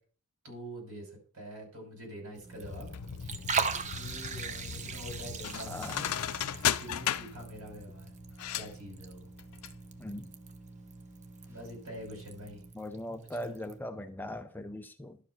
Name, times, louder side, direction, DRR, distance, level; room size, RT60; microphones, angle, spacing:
voice 1, 0.4-2.9 3.2-3.4 3.9-6.1 6.8-8.1 8.5-9.2 11.5-12.6 13.3-13.6, equal, 70° right, 5.9 m, -45 dB
Liquid, 2.3-13.8, right 5 dB, 35° right, 0.7 m, -40 dB
sound 1, 2.4-12.7, right 2 dB, 10° right, 1.7 m, -53 dB
sound 2, 2.6-9.7 10.0-10.1, left 10 dB, 90° left, 0.4 m, -36 dB
voice 2, 5.7-6.0 10.0-10.3 12.8-15.2, left 1 dB, 10° left, 0.4 m, -40 dB
11.5 x 4.9 x 5.7 m
head